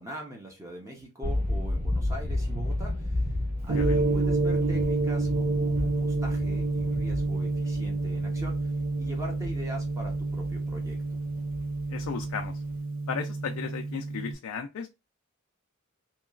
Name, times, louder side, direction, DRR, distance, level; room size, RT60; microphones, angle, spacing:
voice 1, 0.0-3.4 3.6-11.2, right 1 dB, 15° right, 0 dB, 0.6 m, -42 dB
sound 1, 1.2-12.7, left 1 dB, 40° right, 1.5 m, -33 dB
Gong, 3.7-14.3, right 3 dB, 65° right, 0.4 m, -29 dB
voice 2, 11.9-12.6 13.1-14.9, left 6 dB, 70° left, 4 dB, 0.3 m, -35 dB
2.9 x 2.3 x 2.3 m, 0.25 s
head